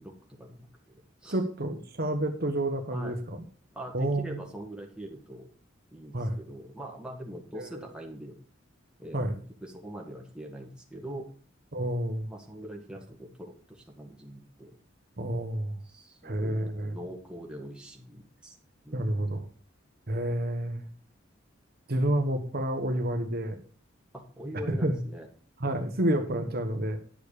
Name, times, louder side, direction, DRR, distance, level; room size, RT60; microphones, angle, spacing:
voice 1, 0.0-1.4 2.9-3.2 3.7-5.5 5.9-8.4 9.0-9.2 9.6-11.3 12.3-14.7 15.9-18.6 18.8-19.3 24.1-25.3, right 1 dB, 5° right, 0 dB, 1.8 m, -42 dB
voice 2, 1.3-3.4 3.9-4.4 6.1-6.4 7.6-7.9 9.1-9.4 11.7-12.3 15.2-15.8 16.2-16.9 18.9-19.5 20.1-20.9 21.9-23.6 24.7-25.0 25.6-27.0, right 1 dB, 55° right, 5 dB, 1.3 m, -29 dB
10.5 x 6.7 x 5.1 m, 0.43 s
head